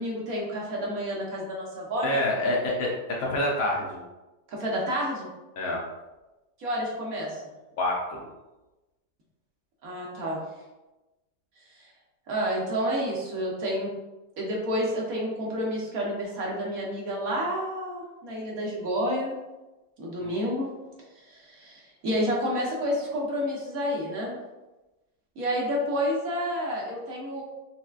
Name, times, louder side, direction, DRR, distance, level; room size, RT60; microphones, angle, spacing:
voice 1, 0.0-2.2 4.5-5.3 6.6-7.4 9.8-10.4 12.3-13.9 14.4-19.3 20.0-20.7 21.3-24.4 25.4-27.4, equal, 65° right, -3 dB, 1.2 m, -29 dB
voice 2, 2.0-4.0 5.6-5.8 7.8-8.3 20.2-20.3, left 1 dB, 65° left, -2 dB, 0.9 m, -27 dB
5.5 x 2.2 x 2.3 m, 1.1 s
omnidirectional pair, 1.8 m